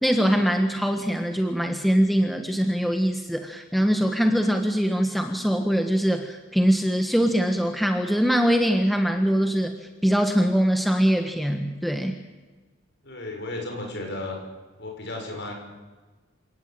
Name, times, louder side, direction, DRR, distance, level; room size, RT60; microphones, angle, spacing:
voice 1, 0.0-9.7 10.0-12.1, equal, ahead, 5 dB, 1.4 m, -22 dB
voice 2, 13.0-14.4 14.8-15.5, left 2 dB, 55° left, 2 dB, 6.4 m, -34 dB
28.0 x 17.5 x 8.9 m, 1.3 s
head